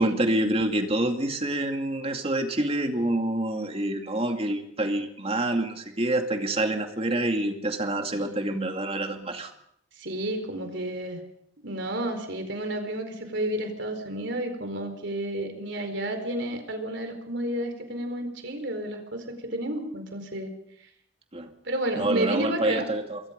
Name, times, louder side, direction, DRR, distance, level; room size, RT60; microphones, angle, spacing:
voice 1, 0.0-9.5 21.3-21.5 21.9-23.2, right 1 dB, 30° right, 5 dB, 2.4 m, -27 dB
voice 2, 10.0-11.2 11.6-20.5 21.6-22.9, right 1 dB, 60° right, 6 dB, 4.5 m, -31 dB
26.5 x 23.0 x 5.3 m, 0.71 s
head